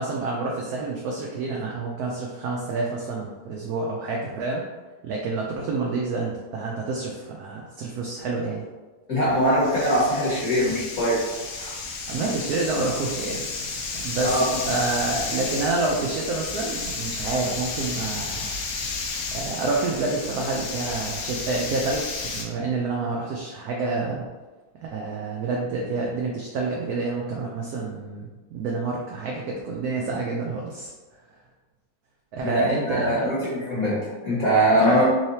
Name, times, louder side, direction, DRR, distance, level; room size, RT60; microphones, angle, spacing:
voice 1, 0.0-4.6 5.0-8.7 12.1-14.4 14.7-18.5 19.3-24.3 24.8-30.9 32.3-33.5 34.7-35.1, right 3 dB, 85° right, -1 dB, 0.8 m, -28 dB
voice 2, 9.1-11.2 11.6-11.7 14.2-14.4 32.4-35.0, equal, 55° left, -7 dB, 1.2 m, -22 dB
sound 1, 9.2-22.4, left 4 dB, 75° left, 0.8 m, -32 dB
3.8 x 3.2 x 2.7 m, 1.3 s
omnidirectional pair, 2.1 m